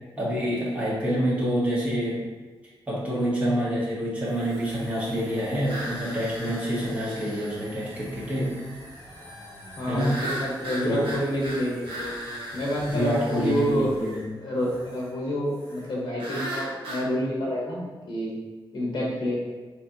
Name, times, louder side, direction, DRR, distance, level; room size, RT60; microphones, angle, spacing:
voice 1, 0.2-2.3 2.9-8.5 9.9-10.2 10.8-11.0 12.9-14.3, equal, 15° right, -8 dB, 1.1 m, -27 dB
sound 1, 4.2-15.2 15.4-16.0, equal, 35° left, 1.2 m, -47 dB
sound 2, 5.7-7.6 9.9-13.6 16.2-17.1, equal, 80° right, 1.0 m, -36 dB
voice 2, 9.8-12.1 12.5-13.9 14.4-18.3 18.7-19.4, equal, 50° left, -3 dB, 0.9 m, -28 dB
4.1 x 2.9 x 2.6 m, 1.3 s
wide cardioid pair, 165°, 9 cm